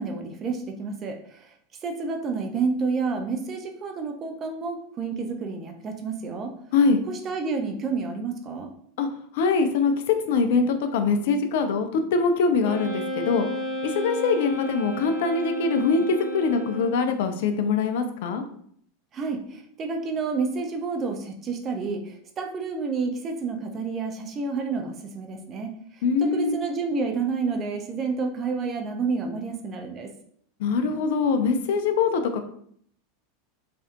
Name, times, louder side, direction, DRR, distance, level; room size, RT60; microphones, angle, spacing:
voice 1, 0.0-1.5 1.8-6.5 7.1-8.7 19.1-30.1, right 4 dB, 30° right, 3 dB, 0.4 m, -30 dB
voice 2, 6.7-7.0 9.0-9.1 9.3-13.5 13.8-18.4 26.0-26.5 30.6-32.5, left 4 dB, 55° left, 7 dB, 0.3 m, -23 dB
Wind instrument woodwind instrument, 12.6-17.3, right 1 dB, 10° right, 1.1 m, -32 dB
2.5 x 2.0 x 2.4 m, 0.64 s
figure-of-eight pair, 85°, 0 cm